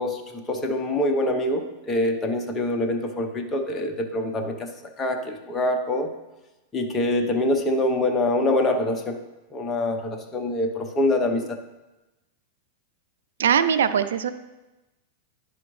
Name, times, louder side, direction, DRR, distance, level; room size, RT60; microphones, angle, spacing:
voice 1, 0.0-6.1 6.7-9.2 9.5-11.6, left 1 dB, 20° left, 4 dB, 0.9 m, -25 dB
voice 2, 13.4-14.3, right 8 dB, 90° right, 11 dB, 0.4 m, -21 dB
11.0 x 5.0 x 3.1 m, 1.0 s
hypercardioid pair, 130°, 0 cm